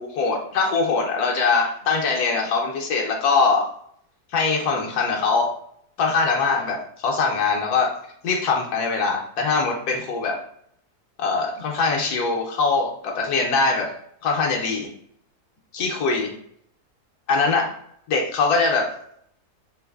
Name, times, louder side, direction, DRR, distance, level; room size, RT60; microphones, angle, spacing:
voice 1, 0.0-3.7 4.3-5.5 6.0-7.9 8.2-10.4 11.2-13.9 14.2-14.9 15.7-16.3 17.3-17.7 18.1-18.9, left 4 dB, 75° left, 0 dB, 1.1 m, -22 dB
3.9 x 2.5 x 2.3 m, 0.67 s
omnidirectional pair, 1.7 m